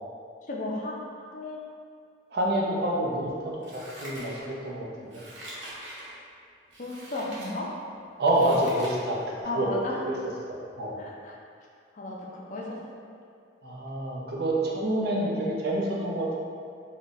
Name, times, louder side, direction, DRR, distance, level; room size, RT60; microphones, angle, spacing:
voice 1, 0.4-1.6 5.5-5.6 6.8-7.7 9.4-10.0 11.0-11.3 11.9-12.8, left 2 dB, 40° left, -3 dB, 0.4 m, -34 dB
voice 2, 2.3-5.2 8.2-10.2 10.5-11.0 13.6-16.3, right 1 dB, 55° right, -3 dB, 0.5 m, -28 dB
Scissors, 3.6-4.7 5.1-6.1 6.7-7.5 8.0-9.0 9.4-9.5, right 1 dB, 75° right, 0.9 m, -43 dB
3.6 x 2.2 x 3.9 m, 2.3 s
head